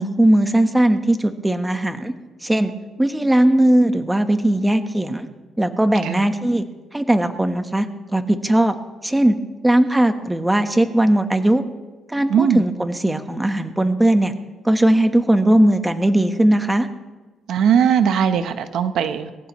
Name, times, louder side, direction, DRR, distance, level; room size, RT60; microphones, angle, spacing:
voice 1, 0.0-2.1 2.4-2.7 3.0-5.3 5.6-6.6 6.9-8.7 9.0-9.4 9.6-11.6 12.1-14.3 14.6-16.9, right 1 dB, 10° right, 7 dB, 1.2 m, -18 dB
voice 2, 12.3-12.6 17.5-19.3, right 8 dB, 75° right, 9 dB, 0.9 m, -19 dB
22.5 x 15.0 x 3.1 m, 1.2 s
cardioid pair, 90°, 0 cm